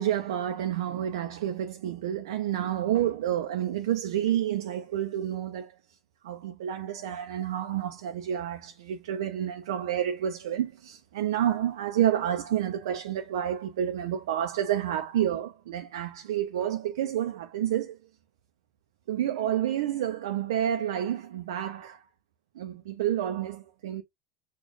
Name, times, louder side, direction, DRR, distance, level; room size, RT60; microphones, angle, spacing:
voice 1, 0.0-5.7 6.2-18.0 19.1-22.0 22.6-24.0, right 11 dB, 80° right, 0.5 m, -29 dB
6.3 x 2.4 x 3.1 m
hypercardioid pair, 90°, 2 cm